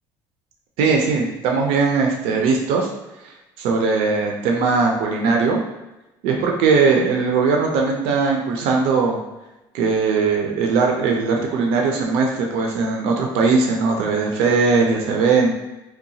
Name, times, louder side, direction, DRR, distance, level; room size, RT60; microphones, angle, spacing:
voice 1, 0.8-2.9 3.6-5.6 6.2-9.2 9.7-15.5, right 4 dB, 85° right, 1 dB, 0.4 m, -19 dB
2.8 x 2.2 x 2.7 m, 0.98 s
cardioid pair, 130°, 10 cm